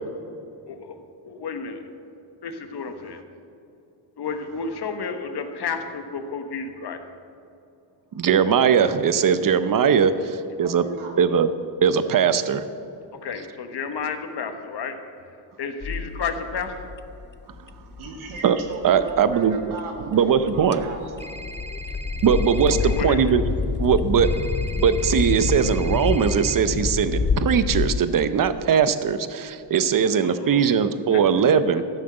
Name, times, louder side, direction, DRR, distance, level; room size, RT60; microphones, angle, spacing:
voice 1, 0.7-1.0 1.2-1.8 2.4-3.2 4.2-7.0 13.1-15.0 15.3-16.7 20.7-20.8 22.8-23.4 29.9-30.7 31.1-31.2 31.5-31.6, left 5 dB, 55° left, 7 dB, 1.3 m, -32 dB
voice 2, 8.1-10.8 11.2-11.5 11.8-12.6 18.4-18.6 18.8-19.6 20.1-20.8 22.2-23.4 23.8-24.3 24.7-31.8, right 7 dB, 45° right, 12 dB, 0.8 m, -20 dB
voice 3, 10.6-11.1 18.0-21.1, right 3 dB, 90° right, 1 dB, 2.1 m, -36 dB
sound 1, 15.8-28.0, left 5 dB, 25° left, 0.5 m, -28 dB
sound 2, 21.2-23.0 24.2-26.6, right 2 dB, 15° right, 0.8 m, -39 dB
13.5 x 5.8 x 7.8 m, 2.6 s
cardioid pair, 75°, 47 cm